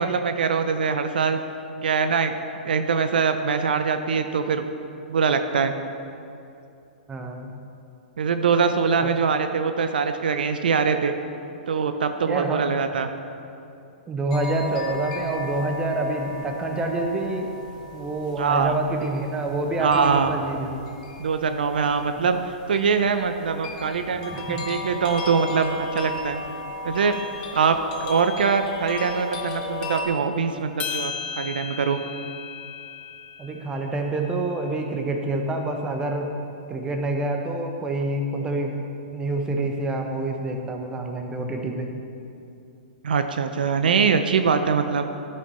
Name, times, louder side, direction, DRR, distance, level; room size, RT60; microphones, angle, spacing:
voice 1, 0.0-1.4 1.8-2.3 2.7-4.6 5.1-5.7 8.2-11.1 11.7-13.1 18.4-18.8 19.8-20.3 21.2-26.4 26.8-27.2 27.5-32.0 43.0-45.1, right 5 dB, 75° right, 8 dB, 0.5 m, -23 dB
voice 2, 7.1-7.6 9.0-9.1 12.3-12.6 14.1-17.5 17.9-20.8 24.3-24.7 33.4-36.3 36.7-38.8 39.1-41.9, right 2 dB, 15° right, 3 dB, 0.9 m, -27 dB
sound 1, 14.3-30.1, left 2 dB, 50° left, 1.5 m, -36 dB
sound 2, 30.8-35.2, left 6 dB, 25° left, 0.8 m, -36 dB
12.0 x 5.4 x 4.2 m, 2.6 s
hypercardioid pair, 115°, 5 cm